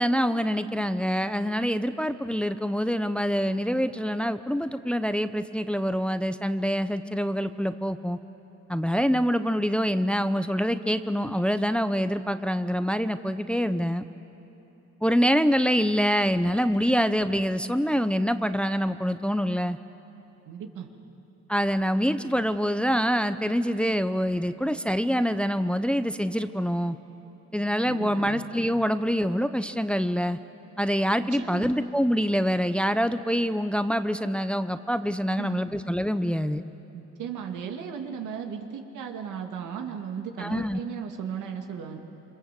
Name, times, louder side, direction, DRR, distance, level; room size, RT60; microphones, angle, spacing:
voice 1, 0.0-8.2 8.7-14.1 15.0-19.8 21.5-27.0 27.5-30.4 30.8-36.6 40.4-40.8, equal, 5° left, 10 dB, 0.7 m, -25 dB
voice 2, 20.5-20.9 27.8-28.5 31.3-31.8 35.3-35.6 36.9-42.0, right 7 dB, 85° right, 3 dB, 2.3 m, -36 dB
27.0 x 24.5 x 7.7 m, 3.0 s
cardioid pair, 90°, 30 cm